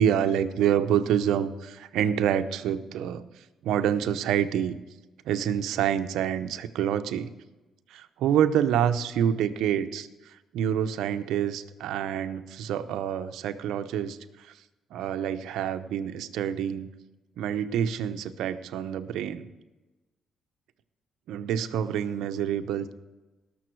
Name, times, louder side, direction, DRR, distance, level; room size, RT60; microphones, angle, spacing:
voice 1, 0.0-4.8 5.2-7.3 7.9-14.6 14.9-16.9 17.4-19.5 21.3-22.9, right 9 dB, 85° right, 10 dB, 0.7 m, -27 dB
18.5 x 7.0 x 4.6 m, 1.1 s
cardioid pair, 90°, 0 cm